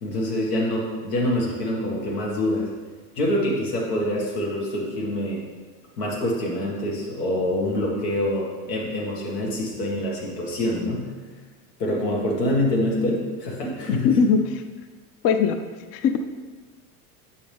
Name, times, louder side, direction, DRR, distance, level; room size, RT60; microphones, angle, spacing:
voice 1, 0.0-2.7 3.2-5.4 6.0-11.1 11.8-14.2, left 1 dB, 90° left, -3 dB, 2.2 m, -25 dB
voice 2, 13.9-14.6 15.2-15.6 15.9-16.2, left 6 dB, 35° left, 8 dB, 0.4 m, -20 dB
7.5 x 5.6 x 3.5 m, 1.4 s
supercardioid pair, 115°, 47 cm